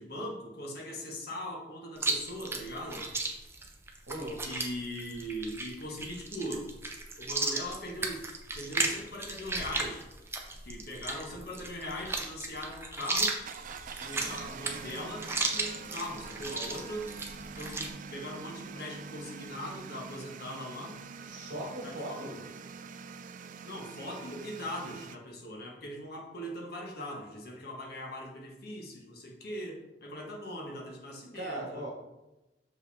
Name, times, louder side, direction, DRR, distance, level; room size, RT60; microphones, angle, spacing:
voice 1, 0.0-3.0 4.4-6.7 7.2-8.3 8.5-10.1 10.6-13.4 14.0-17.1 17.6-20.9 21.8-22.3 23.6-31.8, equal, 60° left, 0 dB, 1.3 m, -40 dB
Chewing mastication, 2.0-17.9, right 3 dB, 15° right, 0.7 m, -35 dB
voice 2, 4.1-4.4 21.2-22.4 31.3-31.9, right 1 dB, 70° right, -1 dB, 1.6 m, -38 dB
sound 1, 13.5-25.2, right 6 dB, 45° right, 0.3 m, -45 dB
6.5 x 5.0 x 3.4 m, 0.99 s
head